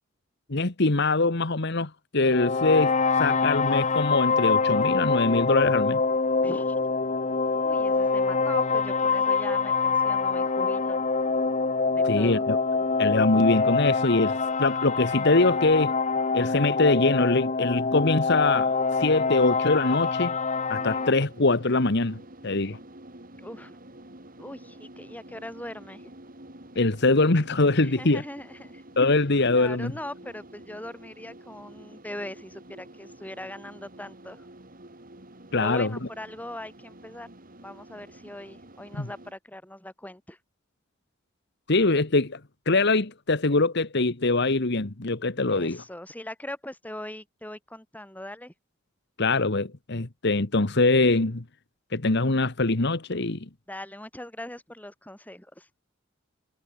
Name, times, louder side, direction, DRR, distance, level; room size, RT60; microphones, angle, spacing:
voice 1, 0.5-6.0 12.0-12.6 13.0-16.0 16.3-18.7 19.0-20.3 20.7-22.8 26.7-28.2 29.0-29.9 35.5-36.0 39.0-39.1 41.7-42.4 42.7-45.8 49.2-51.4 51.9-53.5, left 3 dB, 60° left, 1.5 m, -23 dB
sound 1, 2.3-21.1, left 4 dB, 35° left, 1.1 m, -25 dB
voice 2, 6.4-6.7 7.6-11.0 11.9-12.5 23.4-23.8 24.4-26.0 27.8-28.8 29.5-34.5 35.6-37.3 37.6-40.4 45.5-48.5 53.7-55.8, left 1 dB, 10° left, 3.1 m, -40 dB
sound 2, 20.7-39.3, right 1 dB, 45° right, 4.6 m, -48 dB
head